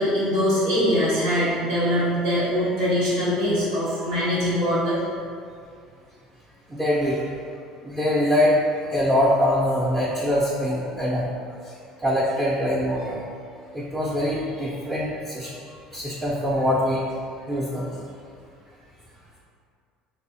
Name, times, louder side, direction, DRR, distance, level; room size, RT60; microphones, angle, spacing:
voice 1, 0.0-5.0, equal, 85° right, -8 dB, 0.9 m, -22 dB
voice 2, 6.7-7.2 7.8-11.2 12.0-13.2 13.7-17.0 17.5-17.9, left 1 dB, 10° right, -6 dB, 0.4 m, -23 dB
3.2 x 2.0 x 2.7 m, 2.2 s
hypercardioid pair, 70°, 2 cm